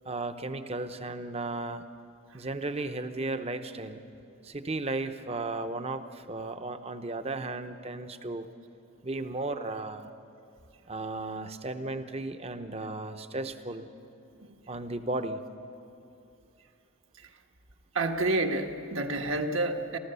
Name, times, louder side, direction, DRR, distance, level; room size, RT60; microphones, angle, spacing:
voice 1, 0.0-1.8 2.3-4.0 4.4-8.5 9.0-10.1 10.9-13.9 14.7-15.4, right 2 dB, 30° right, 9 dB, 0.8 m, -35 dB
voice 2, 17.9-20.0, right 2 dB, 65° right, 4 dB, 1.4 m, -28 dB
27.5 x 14.0 x 6.9 m, 2.7 s
head